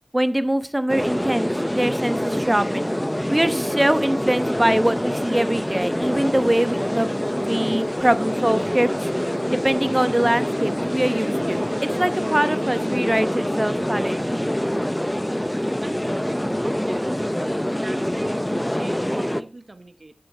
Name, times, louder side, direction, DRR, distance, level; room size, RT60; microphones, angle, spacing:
voice 1, 0.1-2.9 3.3-7.1 7.4-9.1 9.5-14.5, right 1 dB, 20° right, 12 dB, 1.0 m, -23 dB
sound 1, 0.9-19.4, equal, 10° left, 0.7 m, -25 dB
voice 2, 15.4-17.2 17.8-20.1, right 2 dB, 55° right, 11 dB, 1.2 m, -41 dB
12.0 x 7.7 x 4.4 m, 0.35 s
wide cardioid pair, 45°, 0 cm